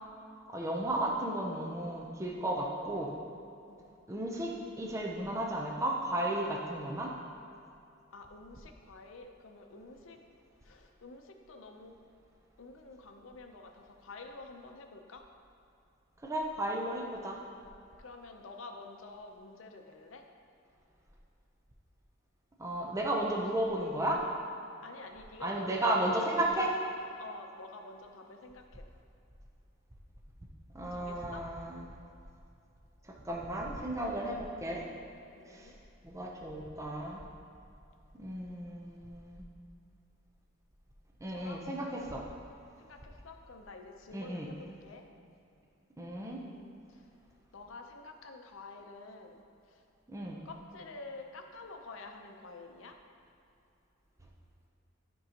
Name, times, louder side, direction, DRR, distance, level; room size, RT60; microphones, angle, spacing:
voice 1, 0.5-3.1 4.1-7.1 16.2-17.4 22.6-24.2 25.4-26.7 30.7-31.8 33.3-34.8 35.5-35.7 36.0-37.2 38.2-39.4 41.2-42.2 44.1-44.5 46.0-46.4 50.1-50.4, right 1 dB, 15° right, -2 dB, 0.6 m, -34 dB
voice 2, 8.1-10.2 10.6-11.9 12.6-15.2 18.0-20.2 24.8-26.6 27.2-28.8 30.9-31.4 35.4-35.8 41.3-42.2 42.8-44.6 44.8-45.1 46.2-46.8 47.5-49.4 49.7-49.8 50.4-52.9, left 3 dB, 70° left, 4 dB, 0.6 m, -48 dB
10.5 x 5.4 x 2.9 m, 2.7 s
head